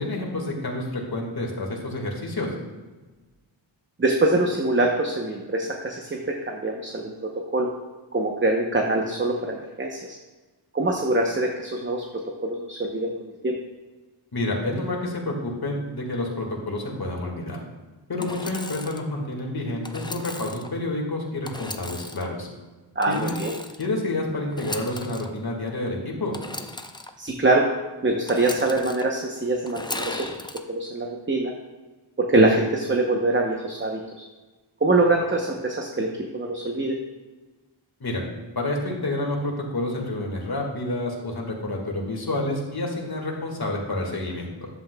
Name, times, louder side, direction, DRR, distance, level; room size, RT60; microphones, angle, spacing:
voice 1, 0.0-2.5 14.3-17.6 18.1-22.5 23.1-23.3 23.8-26.3 38.0-38.2 38.6-44.7, left 2 dB, 55° left, -1 dB, 1.8 m, -29 dB
voice 2, 4.0-6.2 6.5-7.1 7.5-7.7 8.1-10.0 10.7-12.0 12.4-13.6 23.0-23.5 27.2-27.7 28.0-30.3 30.7-31.5 32.3-34.2 34.8-36.1 36.3-36.9, right 2 dB, 25° right, 1 dB, 0.8 m, -23 dB
Engine / Sawing, 18.2-19.0 19.8-20.7 21.4-22.3 23.0-23.9 24.5-25.3 26.3-27.1 28.3-29.0 29.7-30.6, left 2 dB, 10° left, 0.4 m, -36 dB
11.0 x 7.8 x 2.3 m, 1.3 s
wide cardioid pair, 90°, 46 cm